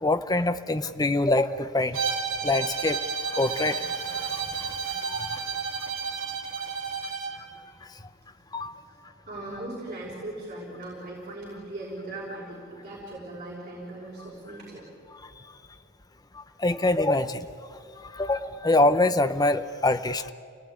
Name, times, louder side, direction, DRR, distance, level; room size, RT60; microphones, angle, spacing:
voice 1, 0.0-2.0 2.4-3.0 3.3-4.7 5.0-5.4 8.5-8.7 16.3-17.4 18.1-20.3, left 2 dB, 20° left, 10 dB, 0.7 m, -25 dB
Bowed string instrument, 1.9-7.4, right 5 dB, 65° right, 3.5 m, -31 dB
voice 2, 9.3-14.8, right 2 dB, 35° right, -6 dB, 5.7 m, -39 dB
28.5 x 18.5 x 9.8 m, 2.5 s
head